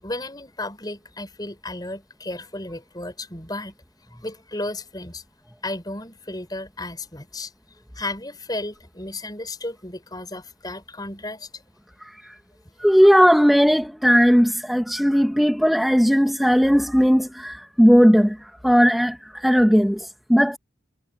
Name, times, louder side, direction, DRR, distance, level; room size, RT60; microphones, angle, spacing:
voice 1, 0.0-3.7 4.2-5.2 5.6-7.5 7.9-11.5, left 2 dB, 20° left, 6.1 m, -33 dB
voice 2, 12.8-20.6, equal, ahead, 1.3 m, -17 dB
head